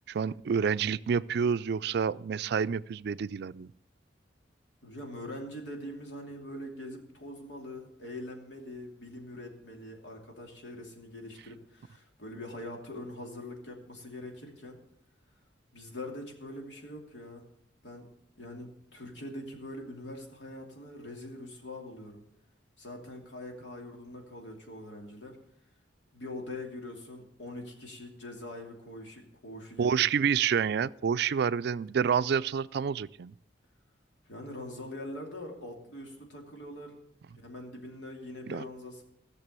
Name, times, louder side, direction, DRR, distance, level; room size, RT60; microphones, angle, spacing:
voice 1, 0.1-3.7 29.8-33.3 38.5-38.6, right 7 dB, 60° right, 16 dB, 0.4 m, -28 dB
voice 2, 4.8-14.8 15.7-17.4 17.8-18.1 18.4-22.2 22.8-25.4 26.1-30.1 34.3-37.0 37.3-39.0, left 1 dB, 80° left, 1 dB, 2.8 m, -43 dB
16.0 x 6.7 x 6.8 m, 0.77 s
head